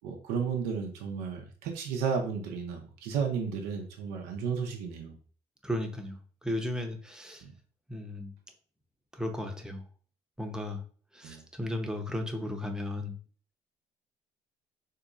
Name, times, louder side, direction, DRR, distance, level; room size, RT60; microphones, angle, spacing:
voice 1, 0.0-5.2 7.4-7.5 11.2-11.4, right 6 dB, 80° right, 2 dB, 0.6 m, -33 dB
voice 2, 5.6-6.2 6.4-7.4 7.9-8.3 9.1-9.8 10.4-10.8 11.1-13.1, left 1 dB, 5° right, 3 dB, 0.8 m, -35 dB
3.7 x 2.8 x 2.4 m, 0.42 s
hypercardioid pair, 60°, 16 cm